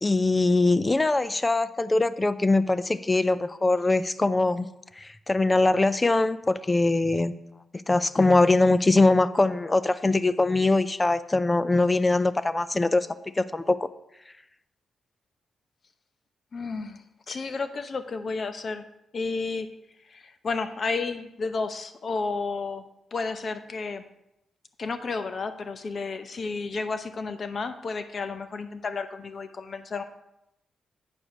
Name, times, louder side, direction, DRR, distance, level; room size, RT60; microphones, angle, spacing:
voice 1, 0.0-4.7 5.0-7.3 7.9-13.1 13.4-13.9, left 2 dB, 20° left, 14 dB, 0.4 m, -22 dB
voice 2, 16.5-18.9 19.1-19.7 20.0-24.0 24.8-30.0, left 4 dB, 45° left, 10 dB, 0.8 m, -32 dB
8.6 x 4.8 x 6.5 m, 0.86 s
cardioid pair, 105°, 0 cm